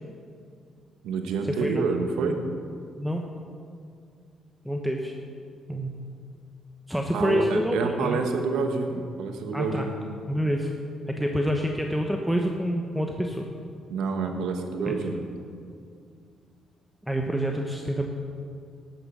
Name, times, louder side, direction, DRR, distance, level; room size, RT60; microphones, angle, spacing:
voice 1, 1.0-2.4 7.1-9.9 13.9-15.2, right 4 dB, 85° right, 5 dB, 1.3 m, -28 dB
voice 2, 4.6-5.1 5.7-5.9 6.9-8.2 9.5-9.9 10.3-10.7 11.1-13.5 14.9-15.0 17.0-18.1, equal, 5° right, 2 dB, 1.0 m, -27 dB
12.0 x 9.1 x 6.2 m, 2.3 s
cardioid pair, 90°, 0 cm